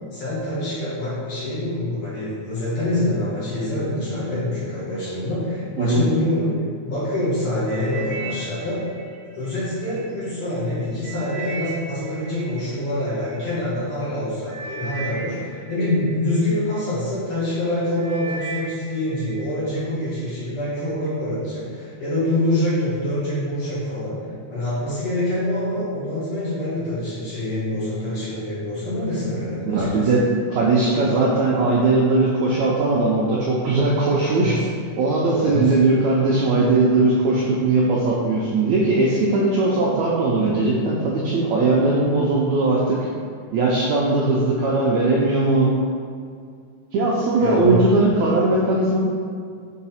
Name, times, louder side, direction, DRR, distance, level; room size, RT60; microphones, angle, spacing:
voice 1, 0.1-6.6 6.8-8.8 9.3-24.2 24.5-30.1 34.2-34.7 35.3-35.7 47.4-47.9, left 1 dB, 45° left, -10 dB, 2.2 m, -25 dB
sound 1, 7.7-10.0 10.5-13.4 14.1-14.2 14.5-16.9 17.4-17.7 18.0-19.5 19.8-20.3 20.9-21.0, right 4 dB, 55° right, 1.5 m, -37 dB
voice 2, 29.7-30.2 30.5-34.6 35.0-43.1 43.5-45.7 46.9-49.0, right 2 dB, 85° right, -4 dB, 1.6 m, -19 dB
5.7 x 4.8 x 4.2 m, 2.2 s
omnidirectional pair, 4.0 m